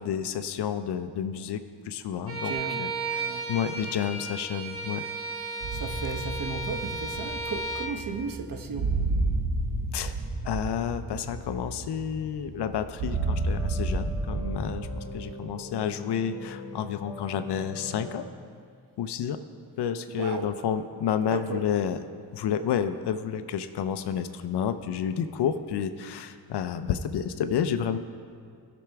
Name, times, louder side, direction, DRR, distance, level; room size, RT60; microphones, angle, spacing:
voice 1, 0.0-5.1 9.9-10.1 10.4-18.2 19.0-19.4 19.8-22.0 22.3-28.0, left 8 dB, 65° left, 10 dB, 0.6 m, -30 dB
Bowed string instrument, 2.3-8.0, right 3 dB, 30° right, 1.2 m, -34 dB
voice 2, 2.4-2.9 3.2-3.5 5.7-9.0 20.1-20.5 21.3-21.6, right 4 dB, 50° right, 5 dB, 1.0 m, -35 dB
sound 1, 5.6-15.0, right 2 dB, 65° right, 2.5 m, -31 dB
sound 2, 13.1-18.3, left 1 dB, 5° right, 1.8 m, -41 dB
16.5 x 6.1 x 3.5 m, 2.2 s
cardioid pair, 95°, 43 cm